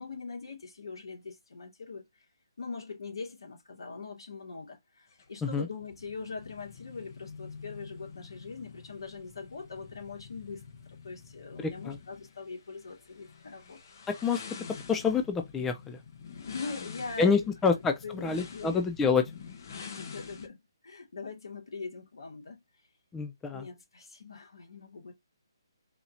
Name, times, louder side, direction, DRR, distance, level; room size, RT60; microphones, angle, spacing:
voice 1, 0.0-2.1 2.6-13.8 16.4-17.6 18.0-18.8 19.9-22.6 23.5-25.1, left 4 dB, 75° left, 2.2 m, -42 dB
sound 1, 5.1-20.5, left 5 dB, 45° left, 1.0 m, -47 dB
voice 2, 11.6-12.0 14.1-14.6 14.9-16.0 17.2-19.2 23.1-23.7, left 5 dB, 10° left, 0.4 m, -27 dB
4.2 x 2.7 x 2.7 m
hypercardioid pair, 160°, 2 cm